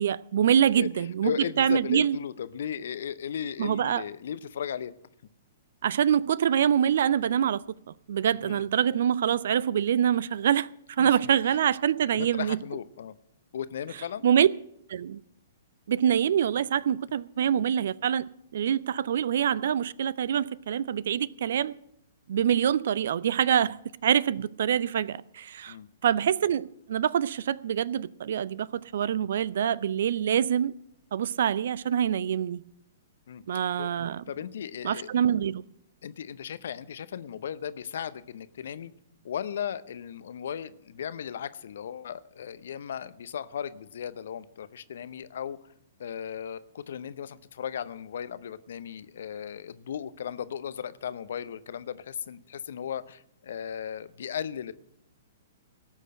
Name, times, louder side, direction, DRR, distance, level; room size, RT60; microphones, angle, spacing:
voice 1, 0.0-1.3 1.6-2.2 3.6-4.0 5.8-7.6 8.1-10.7 11.0-12.6 14.2-14.5 14.9-15.2 15.9-18.2 18.5-21.7 22.3-23.8 24.0-25.7 26.0-30.7 31.1-32.6 33.5-34.2 34.8-35.6, right 9 dB, 60° right, 0.4 m, -25 dB
voice 2, 0.8-4.9 8.3-8.7 11.0-11.6 12.1-13.2 13.5-14.2 23.6-23.7 25.7-25.9 33.3-33.4 33.8-33.9 34.3-35.1 36.0-38.9 39.2-45.6 46.0-54.7, left 8 dB, 60° left, 0.7 m, -36 dB
18.0 x 6.5 x 7.7 m
figure-of-eight pair, 115°, 0 cm